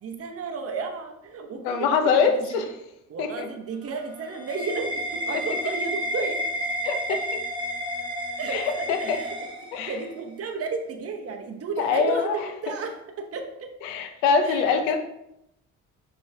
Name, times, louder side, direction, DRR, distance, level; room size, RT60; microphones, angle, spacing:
voice 1, 0.0-2.6 3.1-6.4 7.1-7.2 8.4-9.3 9.8-13.7 14.4-14.8, right 4 dB, 40° right, 4 dB, 0.8 m, -33 dB
voice 2, 1.6-2.7 3.2-3.5 6.8-7.0 8.5-8.6 8.9-9.2 9.7-9.9 11.8-12.4 13.8-15.0, left 5 dB, 85° left, 7 dB, 0.7 m, -23 dB
sound 1, 3.7-10.2, equal, 15° right, 1.1 m, -31 dB
5.4 x 3.5 x 2.7 m, 0.82 s
supercardioid pair, 65°, 35 cm